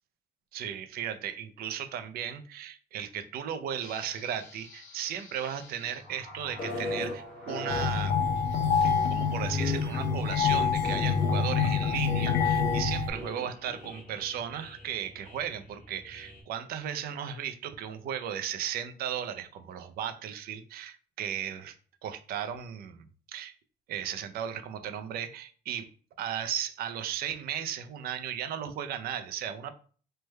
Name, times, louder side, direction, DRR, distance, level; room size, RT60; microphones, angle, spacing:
voice 1, 0.5-8.2 8.8-21.7 22.0-23.5 23.9-25.9 26.2-29.7, right 9 dB, 60° right, 9 dB, 0.4 m, -36 dB
sound 1, 3.8-16.4, left 2 dB, 45° left, 0.8 m, -40 dB
sound 2, 7.7-13.1, left 6 dB, 85° left, 0.6 m, -26 dB
3.2 x 2.1 x 3.2 m, 0.42 s
cardioid pair, 165°, 18 cm